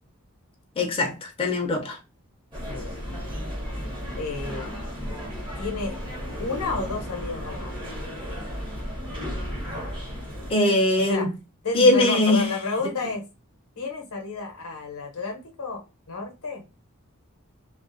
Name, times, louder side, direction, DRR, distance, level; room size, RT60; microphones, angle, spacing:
voice 1, 0.8-2.0 10.5-11.3 11.7-12.5 12.8-12.9, left 2 dB, 25° left, 0.5 m, -21 dB
sound 1, 2.5-10.5, equal, 20° right, 1.0 m, -34 dB
voice 2, 2.7-3.2 4.2-4.7 5.6-6.0 6.4-7.8 11.0-11.3 11.6-13.2 13.8-15.8 16.1-16.6, left 3 dB, 85° left, 0.7 m, -31 dB
2.4 x 2.1 x 2.5 m
head